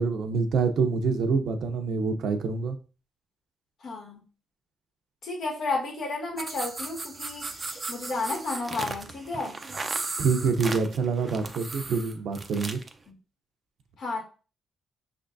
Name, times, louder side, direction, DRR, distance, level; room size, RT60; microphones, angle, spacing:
voice 1, 0.0-2.8 10.2-12.8, right 4 dB, 70° right, 0.7 m, -26 dB
voice 2, 3.8-4.2 5.2-9.6 13.1-13.2 14.0-14.2, left 3 dB, 60° left, 1.8 m, -32 dB
sound 1, 6.4-12.9, right 3 dB, 25° right, 0.6 m, -36 dB
5.5 x 3.5 x 2.6 m
cardioid pair, 90°, 0 cm